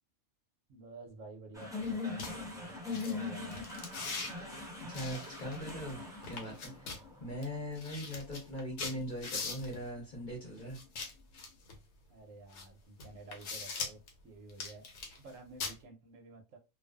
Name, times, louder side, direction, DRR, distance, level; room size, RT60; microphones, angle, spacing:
voice 1, 0.7-4.2 12.1-14.9 15.2-16.6, right 3 dB, 70° right, 4 dB, 0.9 m, -52 dB
sound 1, 1.5-10.0, left 4 dB, 5° right, 0.5 m, -42 dB
sound 2, 1.8-1.9 2.2-2.3 2.9-3.1 3.5-4.3 4.9-5.9 6.2-7.0 7.4-7.5 7.8-9.8 10.7-11.8 12.5-12.6 13.0-14.1 14.5-15.3 15.6-15.7, left 4 dB, 85° left, 1.2 m, -41 dB
voice 2, 4.9-10.8, equal, 40° left, -2 dB, 0.9 m, -41 dB
2.4 x 2.3 x 2.3 m, 0.27 s
omnidirectional pair, 1.5 m